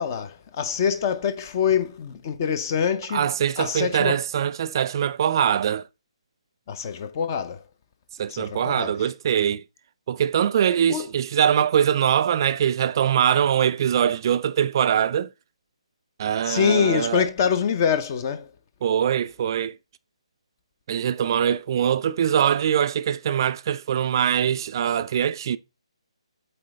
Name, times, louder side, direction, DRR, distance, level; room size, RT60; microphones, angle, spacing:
voice 1, 0.0-3.3 3.6-4.2 6.7-7.6 8.3-8.9 10.9-11.1 16.4-18.5, left 7 dB, 35° left, 0.6 m, -25 dB
voice 2, 3.1-5.9 8.2-9.6 10.1-15.3 16.2-17.3 18.8-19.7 20.9-25.6, right 9 dB, 40° right, 0.3 m, -22 dB
7.6 x 4.0 x 3.2 m
figure-of-eight pair, 150°, 3 cm